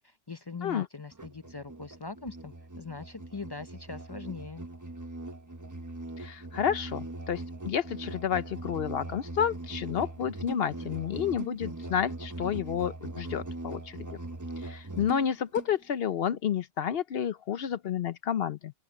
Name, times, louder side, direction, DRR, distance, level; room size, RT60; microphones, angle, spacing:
voice 1, 0.3-4.6, left 4 dB, 30° left, 0.4 m, -41 dB
Musical instrument, 1.1-15.7, right 2 dB, 20° right, 0.8 m, -40 dB
voice 2, 6.2-14.0 14.6-18.7, left 8 dB, 65° left, 0.9 m, -30 dB
open air
omnidirectional pair, 1.1 m